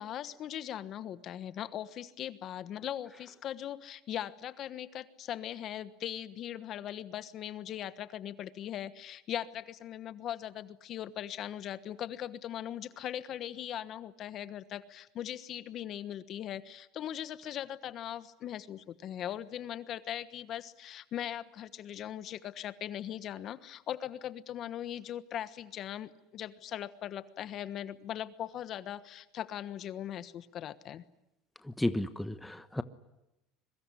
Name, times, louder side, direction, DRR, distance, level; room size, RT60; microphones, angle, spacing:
voice 1, 0.0-31.0, left 11 dB, 45° left, 13 dB, 1.3 m, -40 dB
voice 2, 31.8-32.8, left 1 dB, 5° left, 11 dB, 1.2 m, -32 dB
25.5 x 23.0 x 9.8 m, 0.92 s
supercardioid pair, 120°, 0 cm